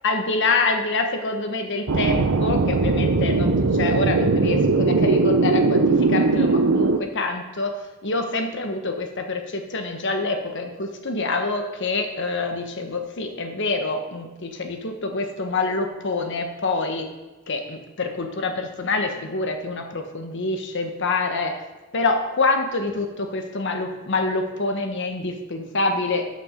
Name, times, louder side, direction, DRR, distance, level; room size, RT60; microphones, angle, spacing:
voice 1, 0.0-17.1 17.5-21.6 21.9-26.2, left 3 dB, 60° left, 5 dB, 1.2 m, -26 dB
sound 1, 1.9-7.0, right 3 dB, 80° right, 0.6 m, -19 dB
13.0 x 5.9 x 5.1 m, 1.1 s
head